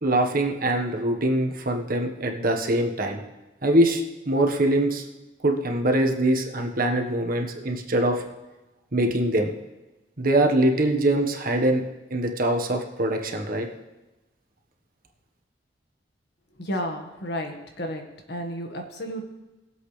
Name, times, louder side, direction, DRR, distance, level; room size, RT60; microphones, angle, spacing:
voice 1, 0.0-3.2 3.6-5.0 5.4-8.2 8.9-9.5 10.2-11.8 12.1-13.7, right 1 dB, 55° right, 3 dB, 1.4 m, -23 dB
voice 2, 16.6-19.2, equal, 65° left, 3 dB, 1.6 m, -32 dB
21.0 x 7.8 x 3.3 m, 1.1 s
head